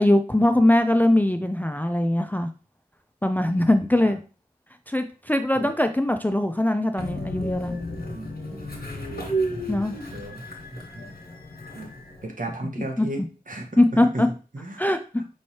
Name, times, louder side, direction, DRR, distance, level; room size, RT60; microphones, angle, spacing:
voice 1, 0.0-2.5 3.2-4.2 4.9-7.8 9.7-10.0 13.0-13.1 13.8-14.3 14.8-15.0, left 1 dB, 10° left, 7 dB, 0.4 m, -21 dB
voice 2, 3.4-4.1 5.5-5.7 8.1-8.7 10.1-10.4 11.0-11.2 11.7-11.9 12.2-13.2 13.5-14.8 15.2-15.3, right 1 dB, 55° right, 1 dB, 1.2 m, -35 dB
Train, 7.0-12.3, right 1 dB, 75° left, 1.3 m, -32 dB
5.3 x 3.2 x 2.8 m, 0.35 s
wide cardioid pair, 55°, 16 cm